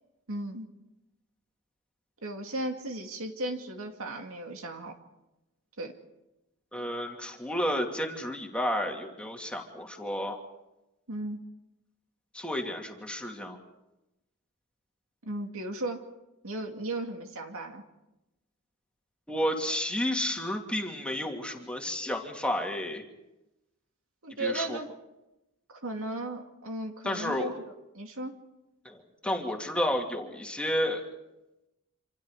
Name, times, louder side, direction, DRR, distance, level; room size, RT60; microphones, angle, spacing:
voice 1, 0.3-0.7 2.2-4.9 5.8-5.9 11.1-11.4 15.2-16.0 16.4-17.8 24.2-24.9 25.7-27.6 27.9-28.3, right 1 dB, 70° right, 4 dB, 2.5 m, -35 dB
voice 2, 6.7-10.4 12.3-13.6 19.3-23.0 24.4-24.8 27.0-27.5 28.8-31.1, left 1 dB, 5° left, 1 dB, 2.6 m, -31 dB
27.5 x 27.0 x 5.0 m, 0.95 s
head